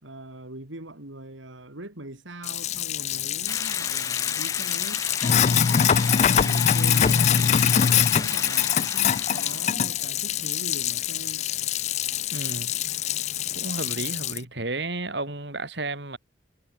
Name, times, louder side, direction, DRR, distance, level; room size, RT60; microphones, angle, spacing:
voice 1, 0.0-5.1 5.3-6.0 6.3-11.5, right 1 dB, 85° right, 3.6 m, -41 dB
Sink (filling or washing), 2.4-14.4, left 8 dB, 35° left, 0.3 m, -24 dB
sound 1, 3.5-9.7, left 4 dB, 15° left, 1.0 m, -35 dB
voice 2, 12.3-12.8 13.5-16.2, right 2 dB, 60° right, 4.1 m, -32 dB
head